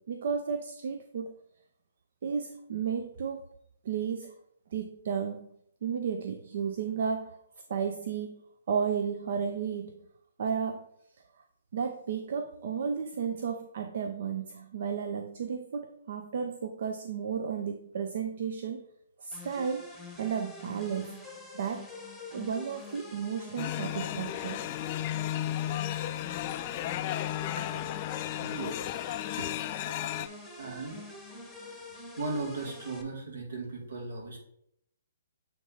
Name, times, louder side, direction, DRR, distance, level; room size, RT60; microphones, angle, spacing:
voice 1, 0.0-1.3 2.2-3.4 3.8-4.3 4.7-5.6 5.8-7.4 7.7-8.4 8.7-10.1 10.4-10.9 11.7-18.8 19.2-19.9 20.2-21.3 21.5-21.9 22.3-24.7, right 6 dB, 55° right, 7 dB, 0.5 m, -33 dB
sound 1, 19.3-33.0, left 2 dB, ahead, 1.0 m, -46 dB
sound 2, 23.6-30.3, left 13 dB, 35° left, 0.3 m, -34 dB
voice 2, 28.4-28.8 29.4-29.5 30.6-31.0 32.2-34.4, right 3 dB, 75° right, -1 dB, 2.2 m, -37 dB
7.8 x 3.2 x 4.0 m, 0.74 s
hypercardioid pair, 135°, 0 cm